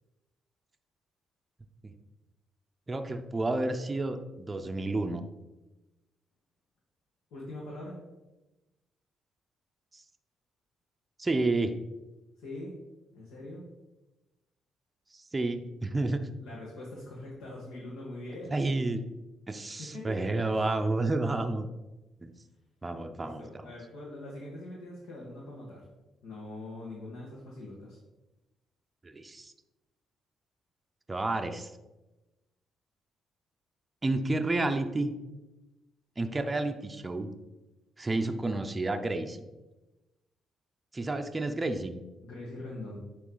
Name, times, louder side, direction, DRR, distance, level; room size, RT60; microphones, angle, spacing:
voice 1, 2.9-5.2 9.9-10.0 11.2-11.8 15.1-16.2 18.5-19.0 19.5-21.7 22.2-22.3 22.8-23.4 29.0-29.5 31.1-31.7 34.0-35.1 36.2-37.3 38.0-39.5 40.9-42.0, right 2 dB, 20° right, 6 dB, 0.5 m, -30 dB
voice 2, 7.3-8.0 12.4-12.7 13.1-13.7 16.4-18.6 19.8-20.6 23.1-25.8 26.2-28.0 42.2-43.0, left 1 dB, 85° left, -5 dB, 1.6 m, -42 dB
9.2 x 3.2 x 3.9 m, 1.0 s
cardioid pair, 90°, 0 cm